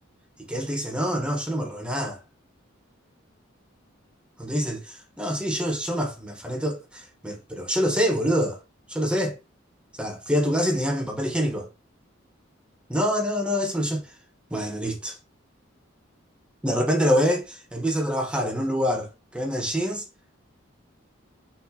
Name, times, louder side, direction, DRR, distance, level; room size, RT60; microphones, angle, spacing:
voice 1, 0.5-2.2 4.4-8.6 8.9-9.4 10.0-11.7 12.9-14.1 14.5-15.2 16.6-20.0, equal, 5° right, 1.0 m, -26 dB
4.4 x 4.0 x 2.7 m
head